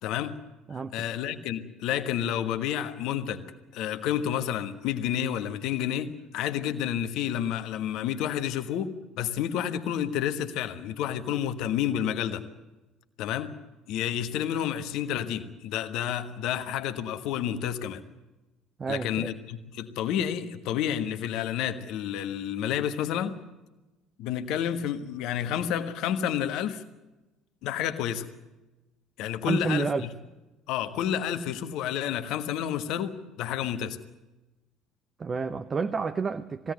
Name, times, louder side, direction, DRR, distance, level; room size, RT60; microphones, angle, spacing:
voice 1, 0.0-0.4 0.7-3.5 3.7-12.4 13.2-13.5 13.9-18.0 18.9-23.4 24.2-26.8 27.6-28.3 29.2-30.1 30.7-34.0, left 10 dB, 60° left, 1.4 m, -30 dB
voice 2, 18.8-19.3 29.5-30.1 35.2-36.7, right 5 dB, 30° right, 0.9 m, -30 dB
21.5 x 16.5 x 9.4 m
figure-of-eight pair, 60°, 0 cm